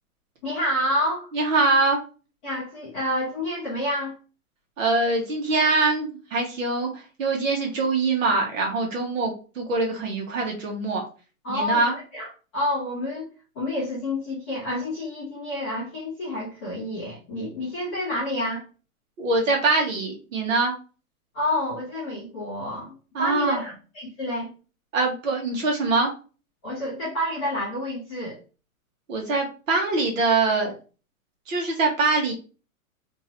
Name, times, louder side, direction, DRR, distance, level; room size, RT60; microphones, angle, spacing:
voice 1, 0.4-1.3 2.4-4.2 11.4-13.3 13.5-18.6 21.3-24.5 26.6-28.4, left 1 dB, 5° left, -13 dB, 0.6 m, -29 dB
voice 2, 1.3-2.0 4.8-11.0 11.5-12.0 19.2-20.7 23.1-23.6 24.9-26.1 29.1-30.7 31.5-32.3, right 3 dB, 60° right, 0 dB, 1.7 m, -23 dB
3.5 x 3.0 x 2.8 m, 0.34 s
hypercardioid pair, 175°, 43 cm